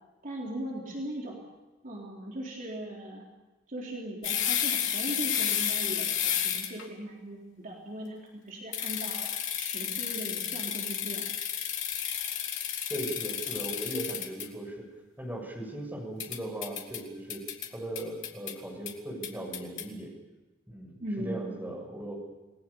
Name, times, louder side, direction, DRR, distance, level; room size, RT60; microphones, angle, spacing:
voice 1, 0.2-1.4 1.8-3.2 3.7-9.3 9.6-11.3 21.0-21.5, right 1 dB, 40° right, -2 dB, 3.8 m, -39 dB
sound 1, 4.2-6.8 8.7-14.5 16.2-17.0 17.3-17.7 18.0-18.5 18.9-19.0 19.2-19.8, left 9 dB, 65° left, 3.3 m, -31 dB
voice 2, 12.9-14.9 15.2-17.4 17.7-20.1 20.7-22.3, right 1 dB, 10° right, 0 dB, 7.3 m, -38 dB
29.0 x 20.0 x 7.1 m, 1.2 s
head